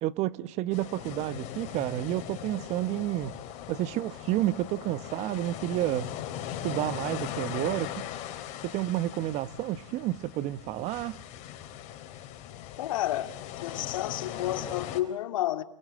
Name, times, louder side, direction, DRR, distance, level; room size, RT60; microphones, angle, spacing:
voice 1, 0.0-3.4 3.7-6.1 6.6-8.1 8.6-11.2, right 15 dB, 40° right, 1.3 m, -30 dB
sound 1, 0.7-15.0, left 11 dB, 40° left, 4.2 m, -39 dB
voice 2, 12.8-13.3 13.6-15.6, left 13 dB, 65° left, 2.1 m, -30 dB
29.5 x 22.5 x 8.7 m
hypercardioid pair, 120°, 18 cm